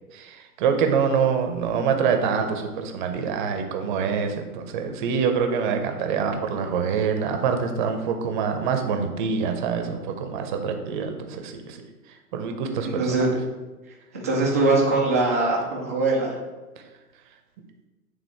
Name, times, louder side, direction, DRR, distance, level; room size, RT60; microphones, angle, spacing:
voice 1, 0.1-13.3, right 6 dB, 35° right, 5 dB, 0.7 m, -25 dB
voice 2, 12.8-13.3 14.1-16.4, right 2 dB, 10° right, -4 dB, 0.3 m, -22 dB
8.2 x 3.6 x 3.4 m, 1.2 s
figure-of-eight pair, 115°, 46 cm